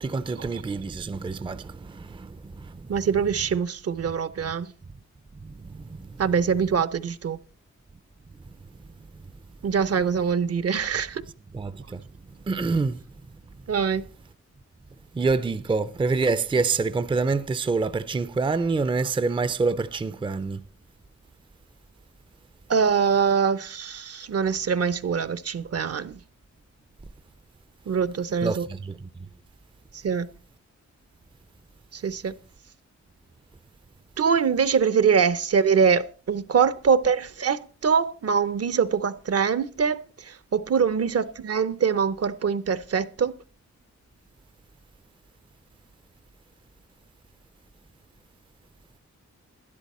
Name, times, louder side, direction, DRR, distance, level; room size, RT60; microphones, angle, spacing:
voice 1, 0.0-3.0 5.4-6.2 11.5-12.0 12.5-13.0 15.1-20.6 28.4-29.1, right 4 dB, 15° right, 0.4 m, -27 dB
voice 2, 2.9-4.7 6.2-7.4 9.6-11.2 13.7-14.0 22.7-26.2 27.9-28.7 30.0-30.3 31.9-32.3 34.2-43.3, right 6 dB, 55° right, 0.7 m, -23 dB
12.0 x 10.5 x 4.2 m
wide cardioid pair, 120°, 29 cm